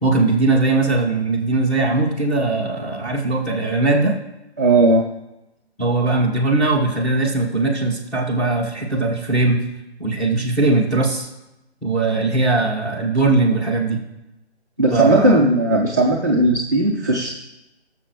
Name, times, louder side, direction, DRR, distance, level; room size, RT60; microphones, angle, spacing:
voice 1, 0.0-4.1 5.8-9.6 10.0-11.3 11.8-14.0 14.9-15.4, right 3 dB, ahead, -8 dB, 1.2 m, -20 dB
voice 2, 4.6-5.1 14.8-17.3, right 2 dB, 15° right, -4 dB, 0.5 m, -16 dB
18.0 x 6.8 x 3.1 m, 0.94 s
figure-of-eight pair, 150°, 34 cm